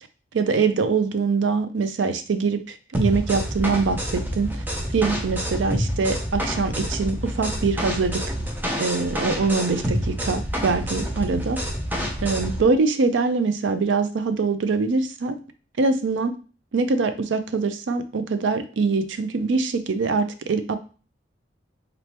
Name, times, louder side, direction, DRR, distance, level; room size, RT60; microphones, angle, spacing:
voice 1, 0.3-4.6 4.9-8.2 8.8-11.6 12.2-15.4 15.8-16.3 16.7-20.8, right 4 dB, 85° right, 10 dB, 0.5 m, -23 dB
sound 1, 2.9-12.6, equal, 10° right, 0.6 m, -28 dB
4.0 x 3.3 x 2.9 m, 0.37 s
head